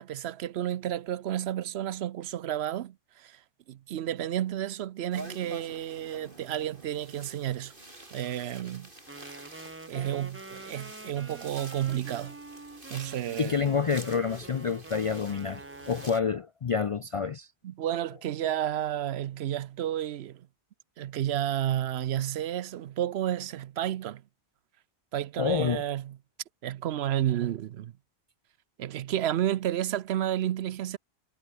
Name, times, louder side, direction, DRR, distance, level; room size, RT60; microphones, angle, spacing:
voice 1, 0.0-3.4 3.7-7.7 8.1-8.9 9.9-12.4 12.9-13.5 17.6-20.5 21.0-24.2 25.1-26.2 26.6-27.9 28.8-31.0, right 11 dB, 75° right, 0.9 m, -31 dB
sound 1, 5.1-16.2, right 2 dB, 50° right, 5.0 m, -48 dB
Wind instrument woodwind instrument, 9.1-16.2, right 2 dB, 15° right, 0.6 m, -46 dB
voice 2, 13.4-17.5 25.4-25.8, left 6 dB, 50° left, 0.4 m, -28 dB
omnidirectional pair, 1.1 m